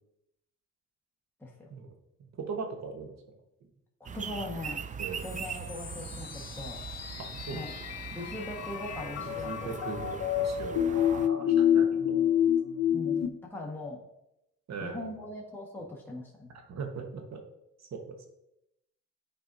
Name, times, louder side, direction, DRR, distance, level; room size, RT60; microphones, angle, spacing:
voice 1, 2.2-3.2 5.0-5.3 7.2-7.6 9.2-12.3 14.7-15.1 16.7-17.4 17.8-18.2, right 5 dB, 60° right, 4 dB, 1.2 m, -40 dB
voice 2, 4.0-4.8 5.2-6.8 7.5-7.7 8.1-9.7 12.9-14.0 14.8-16.5, left 2 dB, 5° left, -2 dB, 1.4 m, -40 dB
sound 1, 4.1-11.3, right 7 dB, 25° right, 0.4 m, -41 dB
sound 2, 5.1-13.3, left 9 dB, 60° left, 0.7 m, -29 dB
10.5 x 4.4 x 2.7 m, 0.85 s
cardioid pair, 90°, 30 cm